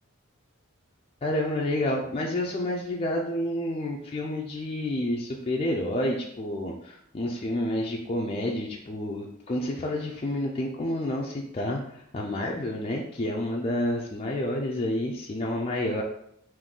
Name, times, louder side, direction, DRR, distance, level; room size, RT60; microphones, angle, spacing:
voice 1, 1.2-16.0, left 1 dB, 25° left, -2 dB, 0.4 m, -29 dB
3.8 x 2.6 x 3.6 m, 0.72 s
head